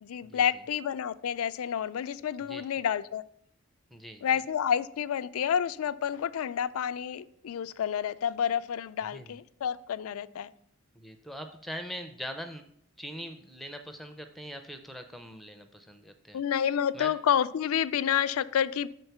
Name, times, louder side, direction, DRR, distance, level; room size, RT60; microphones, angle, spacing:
voice 1, 0.0-3.2 4.2-10.5 16.3-18.9, left 8 dB, 90° left, 15 dB, 0.4 m, -29 dB
voice 2, 3.9-4.2 9.0-9.4 11.0-12.6 13.0-16.4 16.9-17.1, equal, ahead, 6 dB, 0.4 m, -42 dB
6.3 x 4.5 x 6.6 m, 0.69 s
head